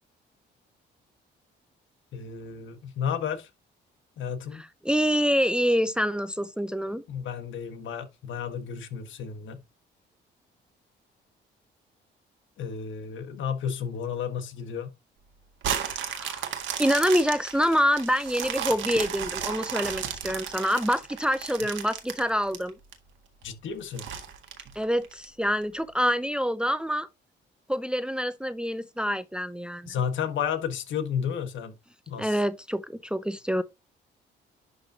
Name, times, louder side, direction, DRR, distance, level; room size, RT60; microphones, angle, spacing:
voice 1, 2.1-3.5 4.2-4.6 7.1-9.6 12.6-14.9 23.4-24.1 29.9-31.7 32.1-32.3, left 7 dB, 75° left, 1.4 m, -32 dB
voice 2, 4.5-7.0 16.0-16.5 16.8-22.8 24.8-27.1 27.7-29.9 32.2-33.6, equal, 5° right, 0.5 m, -26 dB
sound 1, 15.6-22.9 23.4-23.5 24.0-25.2 25.8-25.9, right 8 dB, 75° right, 1.7 m, -33 dB
11.0 x 3.9 x 2.8 m
cardioid pair, 90°, 20 cm